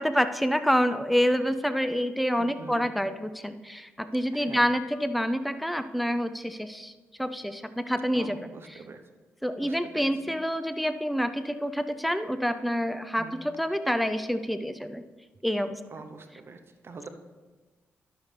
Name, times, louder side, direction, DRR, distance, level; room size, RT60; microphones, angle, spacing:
voice 1, 0.0-6.9 7.2-8.4 9.4-15.0 15.4-15.8, equal, ahead, 10 dB, 0.5 m, -27 dB
voice 2, 2.4-2.9 4.3-4.6 8.1-9.0 9.6-10.4 13.2-13.4 15.9-17.1, right 4 dB, 50° right, 7 dB, 0.8 m, -44 dB
11.5 x 6.7 x 3.4 m, 1.3 s
supercardioid pair, 55°, 5 cm